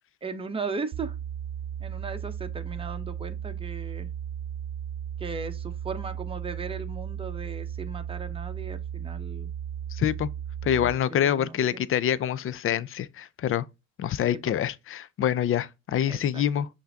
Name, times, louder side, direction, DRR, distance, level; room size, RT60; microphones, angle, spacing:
voice 1, 0.2-1.2 1.8-4.1 5.2-9.5 10.7-11.9 14.3-14.4 16.0-16.4, right 4 dB, 20° right, 0.7 m, -37 dB
sound 1, 0.9-10.9, right 9 dB, 70° right, 0.5 m, -35 dB
voice 2, 9.9-10.3 10.6-13.7 14.0-16.7, left 10 dB, 45° left, 0.4 m, -26 dB
5.7 x 2.6 x 3.4 m
cardioid pair, 90°, 30 cm